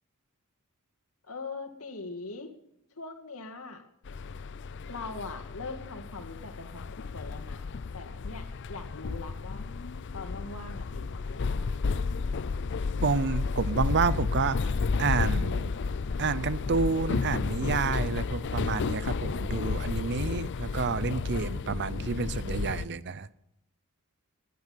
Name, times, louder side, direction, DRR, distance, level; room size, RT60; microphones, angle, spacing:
voice 1, 1.3-2.5 3.0-3.8 4.9-9.7 10.1-11.9, left 3 dB, 75° left, 5 dB, 2.4 m, -42 dB
sound 1, 4.0-22.8, left 4 dB, 55° left, 0.5 m, -32 dB
voice 2, 13.0-14.6 15.0-15.7 16.2-23.3, right 4 dB, 55° right, 16 dB, 0.7 m, -29 dB
21.5 x 11.0 x 5.7 m, 0.77 s
head